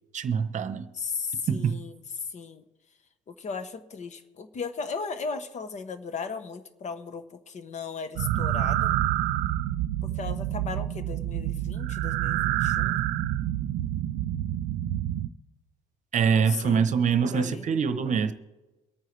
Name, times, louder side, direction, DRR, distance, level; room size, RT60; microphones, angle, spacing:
voice 1, 0.1-0.9 1.5-1.8 16.1-18.3, right 6 dB, 45° right, 0.9 m, -24 dB
voice 2, 0.9-2.6 3.3-9.0 10.0-13.0 16.3-16.9 17.2-17.7, left 5 dB, 45° left, 1.1 m, -36 dB
sound 1, 8.2-15.3, right 13 dB, 90° right, 0.6 m, -28 dB
23.5 x 9.2 x 3.3 m
cardioid pair, 110°, 17 cm